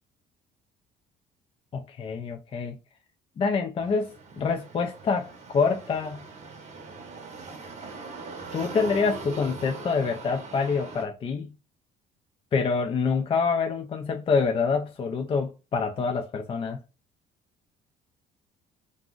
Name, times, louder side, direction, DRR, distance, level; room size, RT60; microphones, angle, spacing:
voice 1, 1.7-2.8 3.4-6.3 8.5-11.6 12.5-16.8, left 5 dB, 35° left, 0.4 m, -26 dB
sound 1, 3.8-11.1, right 4 dB, 40° right, 0.7 m, -41 dB
2.5 x 2.0 x 3.6 m
cardioid pair, 110°, 17 cm